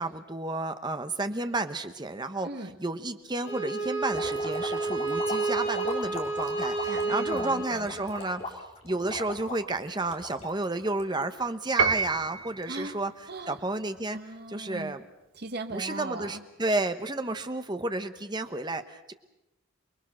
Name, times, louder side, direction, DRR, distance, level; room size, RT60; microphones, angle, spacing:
voice 1, 0.0-2.5 2.8-8.6 8.8-13.1 13.5-14.2 14.5-15.0 15.7-19.1, right 2 dB, 20° right, 9 dB, 1.1 m, -31 dB
voice 2, 2.4-2.8 6.9-8.0 12.7-13.6 14.1-15.0 15.3-16.4, right 2 dB, 50° right, 6 dB, 1.4 m, -39 dB
Bowed string instrument, 3.4-8.3, right 3 dB, 60° left, 5.3 m, -31 dB
sound 1, 4.1-11.4, left 2 dB, 30° left, 3.3 m, -39 dB
Piano, 11.8-12.7, right 5 dB, 70° right, 1.0 m, -26 dB
28.5 x 21.0 x 6.3 m, 0.92 s
head